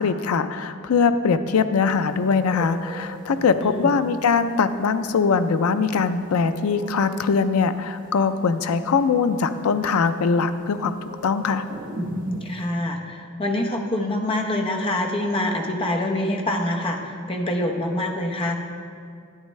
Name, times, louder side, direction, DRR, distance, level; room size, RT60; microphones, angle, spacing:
voice 1, 0.0-11.7, left 5 dB, 85° left, 10 dB, 0.4 m, -22 dB
sound 1, 1.9-12.7, equal, 40° right, 1.1 m, -38 dB
voice 2, 12.4-18.5, left 1 dB, 25° left, 1 dB, 0.8 m, -25 dB
11.0 x 8.1 x 3.2 m, 2.3 s
head